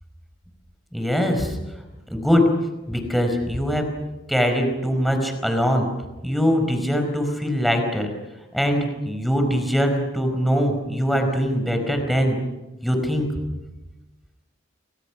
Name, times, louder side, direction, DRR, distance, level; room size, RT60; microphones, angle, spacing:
voice 1, 0.9-1.6 2.1-2.4 2.9-3.8 4.3-5.9 6.2-8.1 8.5-12.4 12.8-13.3, equal, ahead, 4 dB, 4.8 m, -22 dB
29.0 x 25.5 x 6.1 m, 1.1 s
head